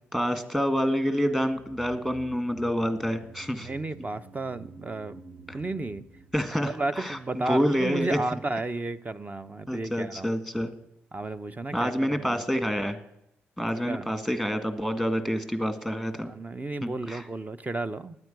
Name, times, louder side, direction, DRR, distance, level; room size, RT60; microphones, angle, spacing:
voice 1, 0.1-3.7 5.5-5.6 6.3-8.2 9.7-10.7 11.7-13.0 13.6-16.3 16.8-17.3, equal, 5° right, 9 dB, 1.9 m, -28 dB
sound 1, 1.3-7.7 8.0-8.1, right 3 dB, 75° right, 1.7 m, -50 dB
voice 2, 3.6-5.2 5.5-6.0 6.6-10.3 11.1-12.4 13.6-14.1 16.2-18.2, right 2 dB, 25° right, 12 dB, 0.8 m, -33 dB
9.8 x 9.2 x 9.2 m, 0.80 s
hypercardioid pair, 45°, 6 cm